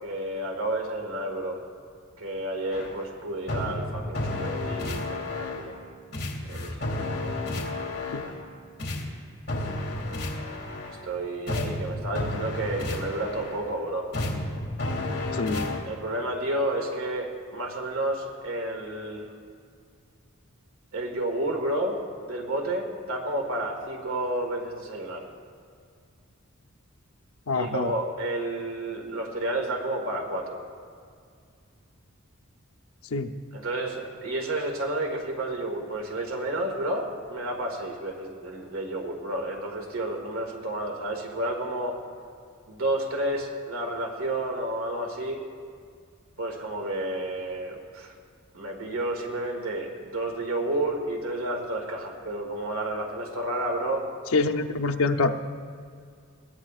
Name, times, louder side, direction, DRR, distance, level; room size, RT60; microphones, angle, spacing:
voice 1, 0.0-1.6 2.2-5.7 6.5-7.3 7.8-8.3 10.9-14.1 15.3-15.4 15.8-19.2 20.9-22.0 22.3-25.3 27.5-30.6 33.5-42.0 42.7-45.4 46.4-48.1 48.5-54.1, right 1 dB, 90° right, 1 dB, 1.9 m, -31 dB
sound 1, 2.7-3.1 3.5-5.8 6.1-8.5 8.8-11.1 11.5-13.7 14.1-15.8, left 2 dB, 50° left, 2.3 m, -32 dB
voice 2, 15.4-15.7 27.5-27.9 33.1-33.3 54.3-55.3, left 3 dB, 80° left, 4 dB, 0.7 m, -25 dB
21.5 x 17.0 x 2.4 m, 2.2 s
head